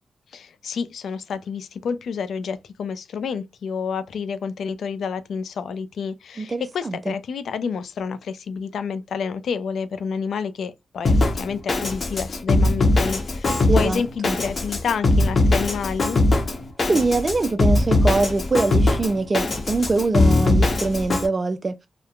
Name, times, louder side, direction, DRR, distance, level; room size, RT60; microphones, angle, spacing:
voice 1, 0.3-16.2, left 6 dB, 75° left, 0.3 m, -29 dB
voice 2, 6.4-7.1 13.5-14.4 16.8-21.7, right 3 dB, 40° right, 0.3 m, -23 dB
Drum kit, 11.0-21.3, left 2 dB, 50° left, 0.8 m, -20 dB
2.9 x 2.1 x 2.3 m
cardioid pair, 55°, 0 cm